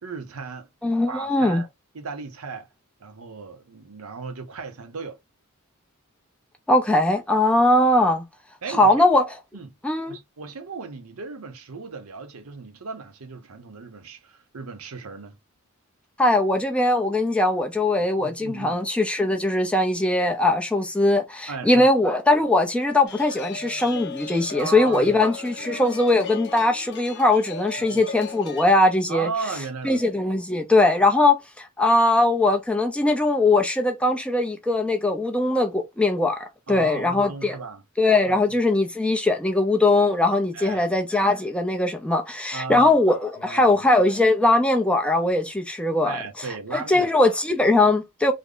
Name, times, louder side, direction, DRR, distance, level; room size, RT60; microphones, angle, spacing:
voice 1, 0.0-0.7 1.1-1.7 1.9-2.7 3.0-5.2 8.6-9.1 9.5-9.7 10.0-15.4 18.2-18.8 21.5-21.8 24.6-25.3 27.9-28.0 29.1-30.0 36.7-37.8 38.3-38.4 40.5-40.8 42.5-42.9 43.4-43.9 46.0-47.1, right 4 dB, 90° right, 0.8 m, -35 dB
voice 2, 0.8-1.6 6.7-8.2 8.8-9.3 9.8-10.2 16.2-29.3 29.8-37.6 38.0-46.2 46.7-48.3, left 2 dB, 5° left, 0.5 m, -20 dB
sound 1, 23.0-28.6, left 5 dB, 55° left, 0.7 m, -37 dB
3.4 x 2.1 x 3.8 m
head